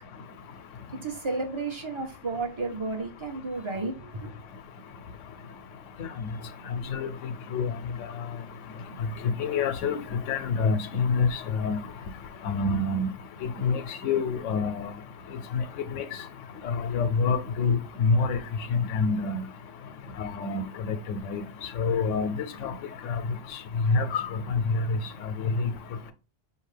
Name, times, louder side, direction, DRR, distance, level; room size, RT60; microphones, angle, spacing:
voice 1, 1.0-4.4, right 3 dB, 30° right, 0.7 m, -32 dB
voice 2, 9.4-10.0 10.3-11.8 12.4-13.1 13.6-14.9 15.9-16.0 16.6-18.4 18.7-19.4 20.2-21.4 21.8-22.3 22.6-22.7 23.1-23.2 23.9-24.6 25.6-25.7, left 4 dB, 90° left, 1.0 m, -26 dB
4.8 x 2.8 x 3.2 m
omnidirectional pair, 1.3 m